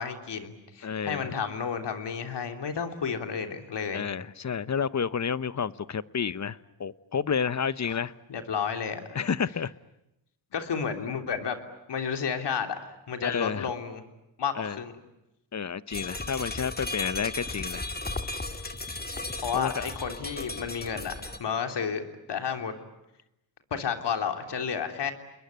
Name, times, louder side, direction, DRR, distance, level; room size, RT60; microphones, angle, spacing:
voice 1, 0.0-4.0 7.9-8.0 8.3-9.2 10.5-11.6 11.9-12.7 13.1-14.0 14.4-15.0 19.4-22.7 23.7-25.1, left 6 dB, 65° left, 6 dB, 3.3 m, -31 dB
voice 2, 0.8-1.3 3.9-8.1 9.1-9.7 13.2-13.7 14.6-14.8 15.5-17.9 19.5-19.9, left 6 dB, 40° left, 16 dB, 1.0 m, -30 dB
sound 1, 15.9-21.4, left 2 dB, 20° left, 2.3 m, -35 dB
28.5 x 21.5 x 9.5 m, 0.89 s
cardioid pair, 60°, 43 cm